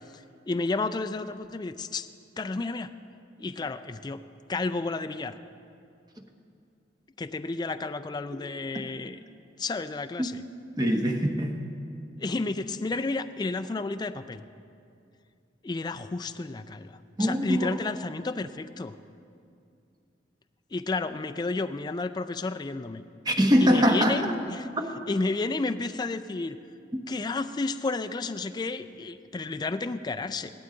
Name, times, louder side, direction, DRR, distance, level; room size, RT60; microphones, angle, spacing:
voice 1, 0.1-2.1 2.4-2.9 3.4-4.2 4.5-5.4 7.2-9.2 9.6-10.4 12.2-14.4 15.6-19.0 20.7-23.0 23.6-24.7 25.1-26.6 27.1-30.5, left 3 dB, 25° left, 9 dB, 0.4 m, -31 dB
voice 2, 10.8-11.6 17.2-17.8 23.2-24.2 24.8-24.9, equal, 20° right, 3 dB, 1.0 m, -23 dB
17.0 x 12.5 x 3.9 m, 2.4 s
head